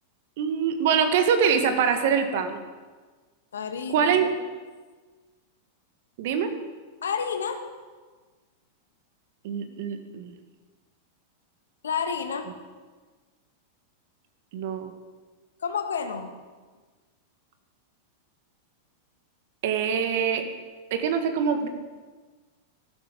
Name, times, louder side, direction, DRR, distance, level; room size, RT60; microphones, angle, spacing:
voice 1, 0.4-2.6 3.9-4.4 6.2-6.5 9.4-10.3 14.5-14.9 19.6-20.4 20.9-21.7, right 7 dB, 55° right, 7 dB, 1.8 m, -24 dB
voice 2, 3.5-4.3 7.0-7.6 11.8-12.5 15.6-16.3, left 6 dB, 75° left, 7 dB, 1.5 m, -30 dB
15.0 x 12.5 x 5.3 m, 1.4 s
figure-of-eight pair, 95°, 0 cm